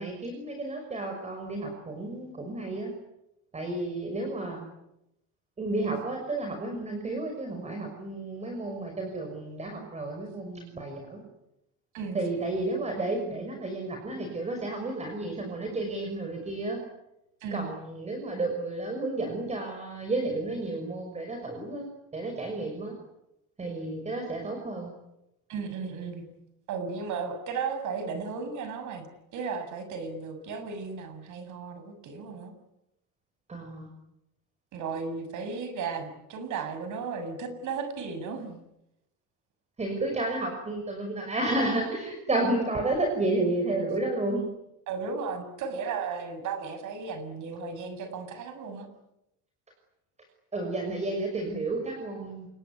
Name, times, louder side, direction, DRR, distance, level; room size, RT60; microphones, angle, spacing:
voice 1, 0.0-2.9 3.5-4.6 5.6-11.2 12.1-16.8 17.5-21.9 22.1-22.9 23.6-24.9 33.5-33.9 39.8-44.4 50.5-52.5, right 2 dB, 20° right, 3 dB, 6.0 m, -31 dB
voice 2, 17.4-17.7 25.5-26.3 26.7-32.5 34.7-38.6 44.9-48.9, right 5 dB, 60° right, 10 dB, 6.9 m, -35 dB
27.5 x 22.5 x 9.7 m, 0.86 s
cardioid pair, 140°, 34 cm